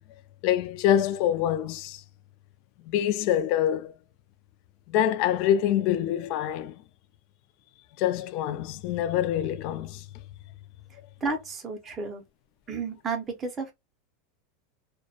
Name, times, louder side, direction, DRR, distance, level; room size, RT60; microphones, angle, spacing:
voice 1, 0.4-2.0 2.9-3.9 4.9-6.8 8.0-10.0, left 11 dB, 50° left, 0.3 m, -25 dB
voice 2, 11.2-12.2 12.7-13.7, right 4 dB, 20° right, 0.5 m, -32 dB
2.2 x 2.1 x 2.6 m
supercardioid pair, 155°, 0 cm